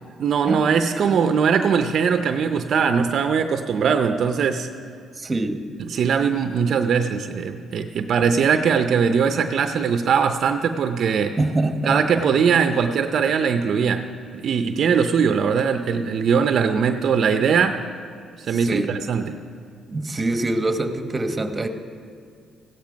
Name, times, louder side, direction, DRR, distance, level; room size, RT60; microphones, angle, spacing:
voice 1, 0.2-4.7 5.8-11.4 11.9-14.0 14.3-17.8 18.4-19.4, right 6 dB, 65° right, 8 dB, 0.6 m, -21 dB
voice 2, 5.2-5.6 11.4-12.0 18.5-18.9 19.9-21.7, right 2 dB, 25° right, 7 dB, 1.2 m, -24 dB
15.5 x 10.5 x 5.2 m, 2.3 s
cardioid pair, 90°, 0 cm